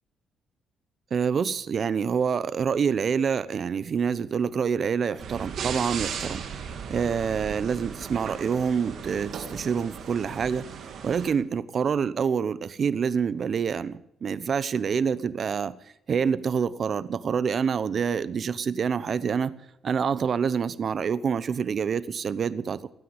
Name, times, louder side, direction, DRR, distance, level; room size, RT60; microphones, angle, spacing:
voice 1, 1.1-6.4 6.9-10.6 11.0-15.7 16.1-19.6 19.8-22.9, right 6 dB, 50° right, 17 dB, 0.9 m, -27 dB
sound 1, 5.2-11.3, right 7 dB, 65° right, 2.6 m, -36 dB
18.5 x 9.4 x 8.1 m, 0.81 s
cardioid pair, 90°, 0 cm